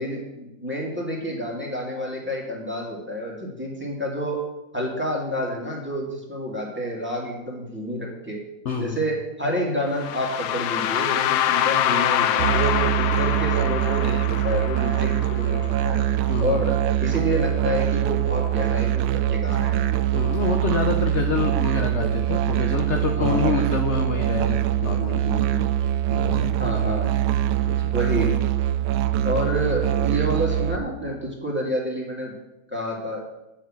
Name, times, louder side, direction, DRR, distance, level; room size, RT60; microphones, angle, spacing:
voice 1, 0.0-4.4 4.7-8.4 8.8-16.0 16.4-16.7 17.0-19.9 23.2-23.6 25.2-25.7 26.6-27.1 27.9-28.3 29.2-32.3 32.7-33.3, equal, 5° right, -2 dB, 2.5 m, -29 dB
voice 2, 8.6-9.0 14.9-15.0 16.3-16.7 20.1-25.3 26.1-26.5 27.6-27.9, left 5 dB, 55° left, 4 dB, 0.8 m, -27 dB
sound 1, 9.9-15.9, left 11 dB, 80° left, 1.4 m, -25 dB
Musical instrument, 12.4-30.8, right 12 dB, 85° right, 1.4 m, -23 dB
8.9 x 7.2 x 7.5 m, 0.96 s
omnidirectional pair, 2.1 m